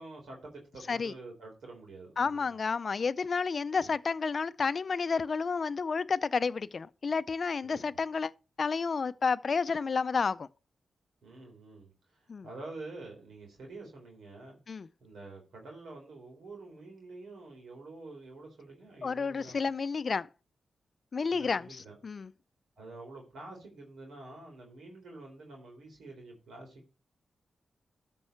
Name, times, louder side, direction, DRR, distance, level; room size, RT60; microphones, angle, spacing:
voice 1, 0.0-2.6 3.8-3.9 7.6-7.8 11.2-14.6 15.0-19.7 21.3-22.0 22.8-26.9, right 2 dB, 85° right, 3.9 m, -48 dB
voice 2, 2.2-8.3 8.6-10.5 12.3-12.5 14.7-14.9 19.0-20.3 21.1-22.3, left 5 dB, 50° left, 0.5 m, -31 dB
13.5 x 5.4 x 4.5 m
cardioid pair, 75°, 0 cm